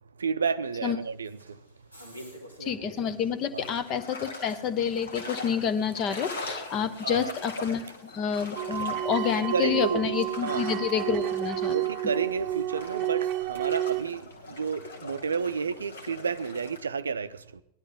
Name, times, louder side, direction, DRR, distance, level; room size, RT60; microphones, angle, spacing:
voice 1, 0.2-1.6 3.5-3.6 7.0-7.3 9.3-10.1 10.4-10.6 11.7-17.6, right 5 dB, 70° right, 0.5 m, -31 dB
sound 1, 1.0-16.7, equal, 90° left, 2.7 m, -54 dB
voice 2, 2.6-11.7, left 7 dB, 35° left, 1.0 m, -29 dB
sound 2, 3.6-16.8, left 2 dB, 70° left, 2.0 m, -42 dB
sound 3, 8.6-14.0, right 13 dB, 35° right, 0.8 m, -30 dB
18.5 x 11.5 x 3.6 m
figure-of-eight pair, 90°, 0 cm